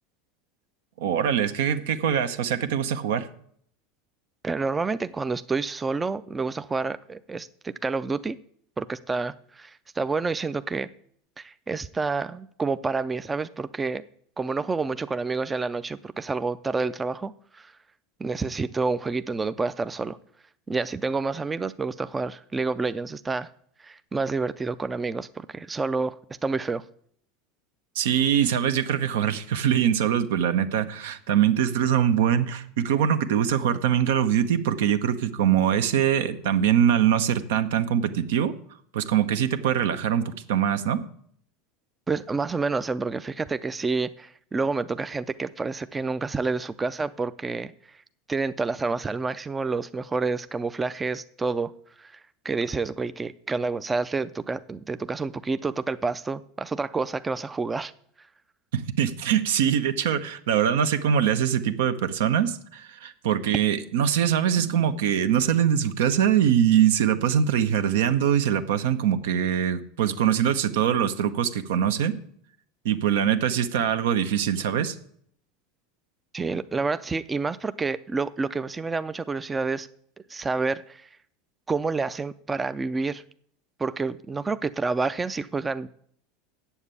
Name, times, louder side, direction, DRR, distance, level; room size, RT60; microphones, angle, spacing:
voice 1, 1.0-3.3 28.0-38.5 38.9-41.0 58.7-72.1 72.8-75.0, right 9 dB, 80° right, 11 dB, 0.9 m, -23 dB
voice 2, 4.4-8.4 8.8-10.9 11.4-14.0 14.4-17.7 18.2-20.2 20.7-23.5 23.8-26.2 26.4-26.8 42.1-47.7 48.3-51.7 52.0-52.2 52.4-57.9 76.3-79.9 80.3-81.1 81.7-83.2 83.8-85.9, right 4 dB, 15° right, 13 dB, 0.4 m, -28 dB
7.9 x 7.2 x 8.3 m, 0.63 s
supercardioid pair, 125°, 0 cm